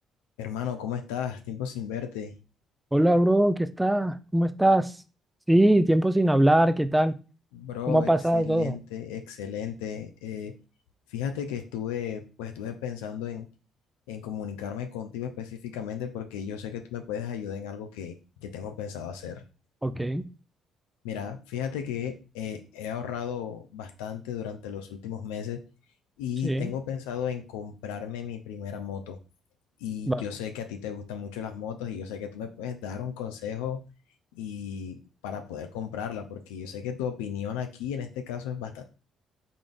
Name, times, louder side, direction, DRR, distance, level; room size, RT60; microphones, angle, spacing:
voice 1, 0.4-2.4 7.5-10.5 11.1-13.5 14.1-19.4 21.0-25.6 26.2-29.2 29.8-33.8 34.3-38.8, left 8 dB, 85° left, 6 dB, 0.4 m, -35 dB
voice 2, 2.9-4.9 5.5-7.1 7.9-8.8 19.8-20.2 26.4-26.7 30.1-30.2, right 1 dB, 10° right, 12 dB, 0.4 m, -22 dB
3.8 x 3.5 x 2.4 m, 0.33 s
hypercardioid pair, 55°, 0 cm